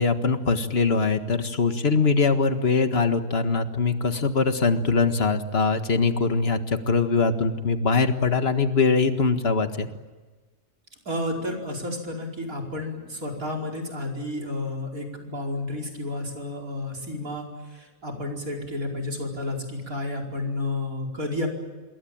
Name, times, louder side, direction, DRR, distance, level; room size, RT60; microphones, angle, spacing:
voice 1, 0.0-9.9, left 4 dB, 45° left, 8 dB, 1.9 m, -22 dB
voice 2, 11.1-17.5 17.7-21.5, left 2 dB, 70° right, 1 dB, 5.3 m, -31 dB
27.0 x 22.5 x 8.9 m, 1.3 s
omnidirectional pair, 1.5 m